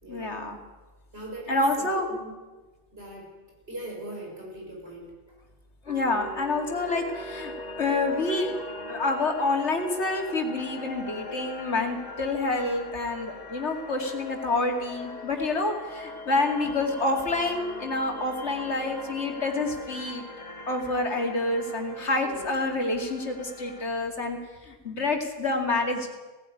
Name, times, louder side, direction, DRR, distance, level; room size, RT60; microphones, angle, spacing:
voice 1, 0.1-0.6 1.5-2.1 5.9-7.5 7.8-8.6 8.9-20.2 20.7-24.4 24.6-26.1, left 2 dB, 65° left, 3 dB, 2.7 m, -28 dB
voice 2, 1.1-2.3 2.9-3.3 3.7-5.1 22.2-22.8, right 1 dB, 55° right, -1 dB, 6.6 m, -40 dB
sound 1, 5.9-23.9, left 1 dB, 35° left, 1.8 m, -41 dB
17.5 x 16.0 x 9.8 m, 1.2 s
omnidirectional pair, 1.3 m